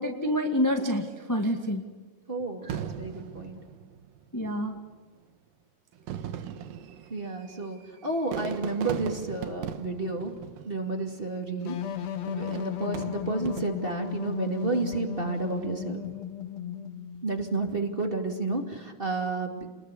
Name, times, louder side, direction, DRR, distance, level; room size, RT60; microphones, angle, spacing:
voice 1, 0.0-1.8 2.6-2.8 4.3-4.8, equal, 10° left, 3 dB, 1.1 m, -28 dB
voice 2, 2.3-3.6 4.4-4.5 7.1-10.3 10.6-11.8 12.3-16.1 17.2-19.7, right 3 dB, 20° right, 3 dB, 2.2 m, -31 dB
Fireworks, 2.7-4.3 5.2-5.3 5.9-11.2 12.3-14.1 14.6-15.1, right 9 dB, 85° right, 3.1 m, -38 dB
sound 1, 11.6-17.3, left 8 dB, 60° left, 2.0 m, -35 dB
29.5 x 21.5 x 8.4 m, 1.4 s
omnidirectional pair, 3.9 m